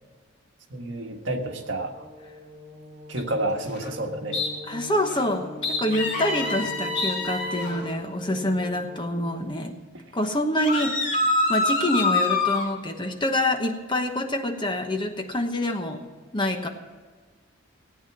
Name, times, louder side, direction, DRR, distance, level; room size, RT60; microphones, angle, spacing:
voice 1, 0.7-1.9 3.1-4.4, right 1 dB, 65° right, 3 dB, 1.6 m, -29 dB
sound 1, 1.5-9.4, equal, 20° right, 4.8 m, -41 dB
sound 2, 3.2-3.3 3.7-3.9 4.3-4.5 5.0-5.3 5.6-6.7 7.0-7.1 7.6-7.9, left 4 dB, 60° left, 3.1 m, -31 dB
voice 2, 4.7-9.8 10.1-11.0 11.5-16.1 16.3-16.7, left 1 dB, 25° left, 5 dB, 1.0 m, -26 dB
sound 3, 5.9-7.7 10.6-12.7, left 2 dB, 40° left, 2.5 m, -25 dB
17.5 x 9.0 x 6.0 m, 1.5 s
head